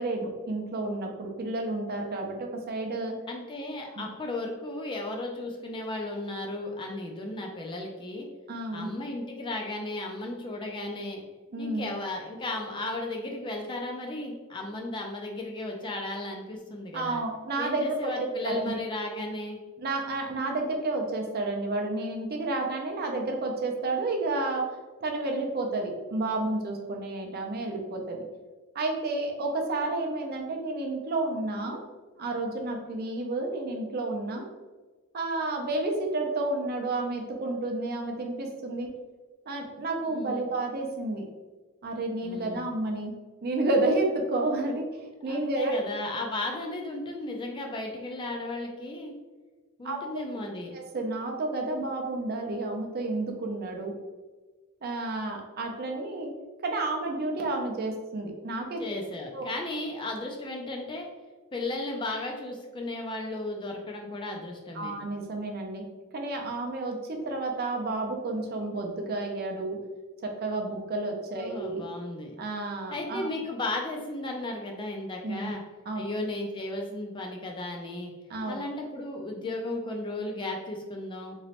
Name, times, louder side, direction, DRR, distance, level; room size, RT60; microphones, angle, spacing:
voice 1, 0.0-3.1 3.9-4.0 8.5-8.9 11.5-11.9 16.9-18.1 18.5-18.7 19.8-24.6 25.0-28.2 28.7-31.8 32.2-34.4 35.1-38.9 39.5-41.2 41.8-43.1 43.4-45.7 49.8-50.0 50.7-53.9 54.8-56.3 56.6-58.8 59.3-59.5 64.7-65.8 66.1-69.8 70.4-71.8 72.4-73.3 75.2-75.5 75.9-76.0 78.3-78.6, right 2 dB, 45° right, 2 dB, 0.5 m, -31 dB
voice 2, 3.3-8.3 8.7-11.2 11.6-17.2 17.6-19.6 40.1-40.5 42.2-42.7 45.2-49.1 49.8-50.7 58.8-61.1 61.5-65.0 71.3-72.4 72.9-75.6 76.0-78.1 78.5-81.4, left 2 dB, 20° left, 1 dB, 0.3 m, -35 dB
3.0 x 2.9 x 2.9 m, 1.3 s
head